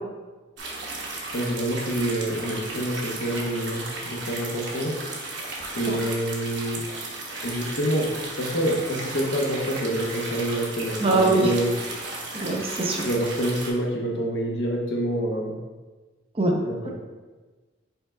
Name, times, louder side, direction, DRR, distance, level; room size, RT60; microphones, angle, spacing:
sound 1, 0.6-13.7, right 2 dB, 60° right, 0.9 m, -35 dB
voice 1, 1.3-5.0 5.7-6.8 7.4-11.7 13.0-15.6 16.6-16.9, right 1 dB, 60° left, -1 dB, 0.8 m, -27 dB
voice 2, 11.0-11.5 12.3-13.1 16.4-16.9, right 2 dB, 30° right, 0 dB, 0.5 m, -23 dB
5.5 x 4.3 x 2.3 m, 1.3 s
head